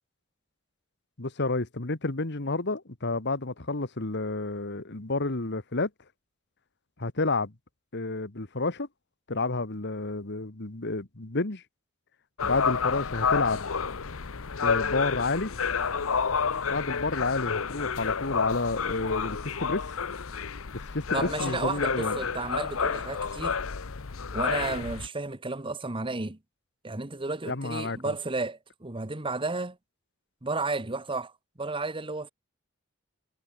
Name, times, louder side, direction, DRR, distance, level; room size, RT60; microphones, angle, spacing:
voice 1, 1.2-5.9 7.0-7.5 7.9-8.9 9.3-11.6 12.4-13.7 14.6-15.5 16.7-19.8 20.7-22.2 27.5-28.1, left 3 dB, 55° left, 1.8 m, -30 dB
sound 1, 12.4-25.1, left 6 dB, 80° left, 0.9 m, -30 dB
voice 2, 21.1-23.6 24.3-26.4 26.8-29.8 30.4-31.3 31.6-32.3, right 3 dB, 25° right, 1.3 m, -32 dB
head